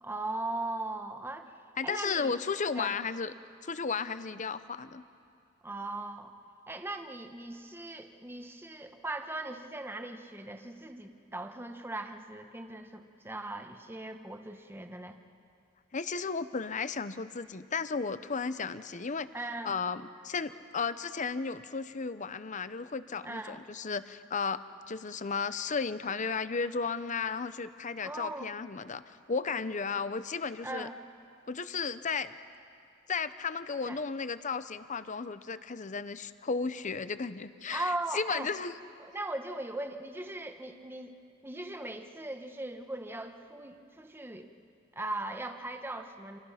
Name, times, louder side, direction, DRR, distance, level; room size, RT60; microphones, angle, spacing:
voice 1, 0.0-1.5 1.8-2.3 2.8-2.9 5.6-6.3 6.7-15.2 19.3-19.7 23.2-23.6 28.0-28.5 30.6-30.9 33.8-34.0 37.7-38.5 39.0-41.1 41.4-44.5 44.9-46.4, right 2 dB, 10° right, 6 dB, 1.2 m, -39 dB
voice 2, 1.8-3.3 3.6-5.0 15.9-19.3 19.6-24.6 24.9-30.9 31.5-32.4 33.1-38.7, left 5 dB, 40° left, 13 dB, 0.7 m, -34 dB
30.0 x 26.0 x 5.8 m, 2.4 s
head